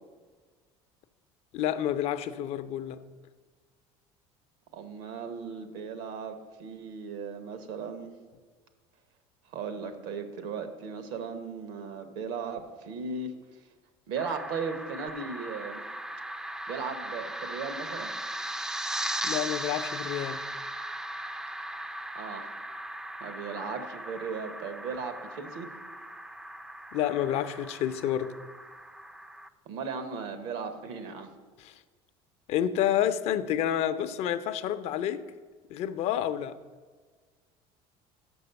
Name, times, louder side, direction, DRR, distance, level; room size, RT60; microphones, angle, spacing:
voice 1, 1.5-3.0 19.2-20.4 26.9-28.3 31.6-31.7 32.5-35.2 35.7-36.6, left 10 dB, 55° left, 0.5 m, -29 dB
voice 2, 4.7-8.1 9.5-13.3 14.1-15.8 16.7-18.1 22.1-22.5 23.2-25.7 29.7-31.3, right 5 dB, 80° right, 1.0 m, -37 dB
sound 1, 14.2-29.5, right 1 dB, 5° right, 0.3 m, -38 dB
6.1 x 6.1 x 6.8 m
cardioid pair, 125°, 13 cm